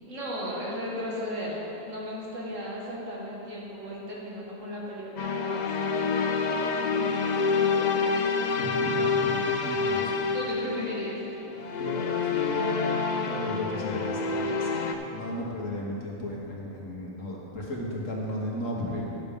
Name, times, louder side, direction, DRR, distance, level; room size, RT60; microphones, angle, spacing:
voice 1, 0.1-8.0 10.3-11.4, equal, 80° right, -5 dB, 2.4 m, -36 dB
sound 1, 5.2-14.9, left 4 dB, 50° left, 0.6 m, -27 dB
voice 2, 8.6-10.1 11.8-19.2, left 1 dB, 85° left, -3 dB, 1.9 m, -35 dB
11.0 x 6.7 x 5.3 m, 3.0 s
omnidirectional pair, 1.3 m